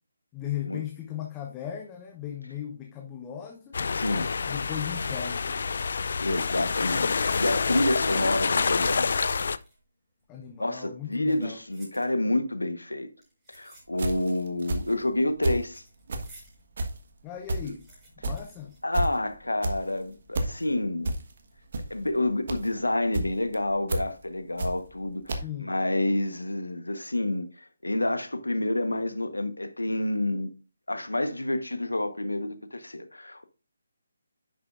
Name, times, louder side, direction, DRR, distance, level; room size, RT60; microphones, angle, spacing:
voice 1, 0.3-3.8 4.5-5.7 10.3-11.6 17.2-17.8 18.2-18.7 25.4-25.7, left 10 dB, 20° left, 0.8 m, -37 dB
sound 1, 3.7-9.6, left 5 dB, 55° left, 0.4 m, -27 dB
voice 2, 3.9-4.3 6.2-9.5 10.6-13.1 13.5-15.8 17.6-17.7 18.8-21.1 21.9-30.5 30.9-33.4, left 1 dB, 90° left, 1.1 m, -29 dB
sound 2, 7.1-7.7 8.5-9.9 10.2-10.3 11.1-12.5 13.2-14.4 14.7-16.6 17.0-17.1 17.3-19.4 19.7-19.8 20.5-20.9 21.3-21.5, right 1 dB, 15° right, 5.0 m, -55 dB
sound 3, 13.9-15.7 16.0-25.0 25.3-25.4, right 1 dB, 50° right, 1.3 m, -31 dB
9.7 x 6.7 x 2.5 m
figure-of-eight pair, 150°, 0 cm